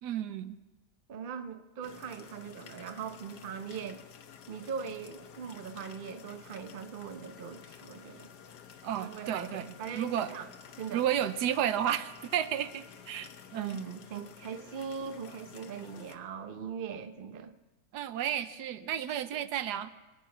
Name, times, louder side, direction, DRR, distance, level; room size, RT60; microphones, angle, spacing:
voice 1, 0.0-0.6 8.8-10.4 10.9-13.8 17.9-19.9, right 10 dB, 85° right, 13 dB, 1.3 m, -32 dB
voice 2, 1.1-4.0 4.5-8.3 8.9-10.5 10.8-11.0 13.5-17.5, right 6 dB, 45° right, 9 dB, 0.8 m, -40 dB
sound 1, 1.8-16.2, left 8 dB, 80° left, 1.5 m, -52 dB
24.0 x 9.4 x 6.0 m, 1.1 s
omnidirectional pair, 1.7 m